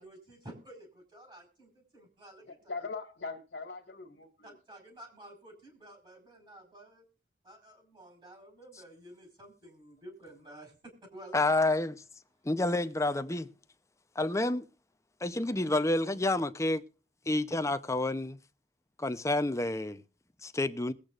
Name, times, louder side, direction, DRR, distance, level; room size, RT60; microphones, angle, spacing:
voice 1, 0.0-2.7 4.4-7.0 7.4-11.5, right 1 dB, 25° right, 4.7 m, -52 dB
voice 2, 2.5-4.6, left 4 dB, 85° left, 1.8 m, -41 dB
voice 3, 11.3-12.0 12.4-13.5 14.2-14.6 15.2-16.8 17.3-18.4 19.0-20.0 20.4-20.9, left 2 dB, 15° left, 0.7 m, -29 dB
21.0 x 8.5 x 2.5 m
head